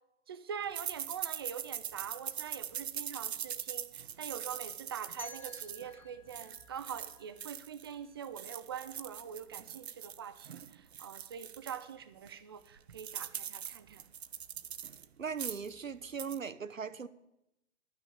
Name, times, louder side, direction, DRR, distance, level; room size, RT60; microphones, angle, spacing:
voice 1, 0.3-14.0, right 8 dB, 20° right, 0.4 m, -44 dB
sound 1, 0.7-7.9 8.2-11.8 12.3-12.4 12.6-15.0 15.3-15.7 16.0-16.4, right 9 dB, 55° right, 0.8 m, -42 dB
sound 2, 5.2-8.1, left 3 dB, 5° left, 0.8 m, -54 dB
voice 2, 15.2-17.1, right 6 dB, 85° right, 0.9 m, -39 dB
12.0 x 6.5 x 8.1 m
figure-of-eight pair, 125°, 38 cm